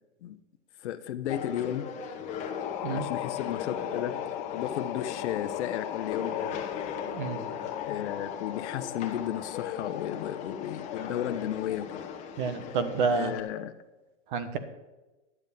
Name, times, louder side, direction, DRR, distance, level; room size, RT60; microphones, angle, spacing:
voice 1, 0.8-1.9 2.9-4.1 4.5-6.3 7.8-12.1 13.1-13.7, left 11 dB, 65° left, 8 dB, 1.0 m, -34 dB
sound 1, 1.3-13.4, left 6 dB, 20° left, 1.1 m, -39 dB
sound 2, 2.3-12.1, left 12 dB, 40° left, 0.9 m, -38 dB
voice 2, 7.1-7.4 12.4-13.3 14.3-14.6, right 5 dB, 40° right, 11 dB, 1.3 m, -29 dB
11.5 x 7.7 x 6.7 m, 1.1 s
supercardioid pair, 170°, 37 cm